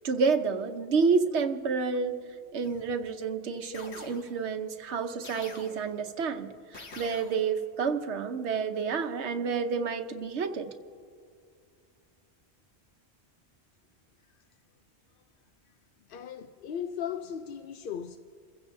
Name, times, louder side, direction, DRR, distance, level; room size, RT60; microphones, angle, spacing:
voice 1, 0.0-2.2 2.5-10.7, right 5 dB, 85° right, 1.2 m, -29 dB
sound 1, 2.6-3.1 3.7-4.6 5.2-6.1 6.7-7.6, left 3 dB, 85° left, 1.5 m, -47 dB
voice 2, 16.1-18.2, left 8 dB, 60° left, 0.7 m, -37 dB
27.5 x 16.0 x 2.7 m
omnidirectional pair, 1.1 m